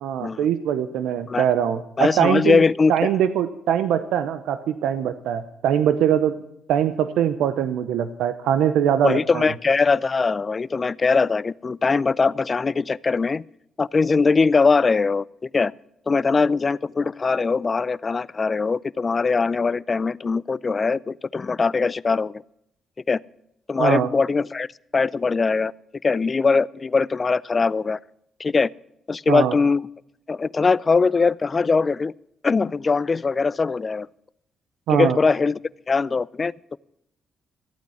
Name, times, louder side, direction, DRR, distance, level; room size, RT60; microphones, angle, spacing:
voice 1, 0.0-2.6 2.9-6.4 6.7-9.5 23.8-24.1 29.3-29.5 34.9-35.2, right 9 dB, 80° right, 13 dB, 0.7 m, -22 dB
voice 2, 2.0-2.9 9.0-13.4 13.8-15.7 16.1-22.4 23.1-23.2 23.7-24.7 24.9-25.7 26.0-28.0 28.4-28.7 29.1-29.8 30.3-32.1 32.4-34.1 34.9-35.6 35.9-36.5, left 4 dB, 35° left, 22 dB, 0.4 m, -21 dB
14.5 x 9.0 x 7.1 m, 0.77 s
supercardioid pair, 65°, 0 cm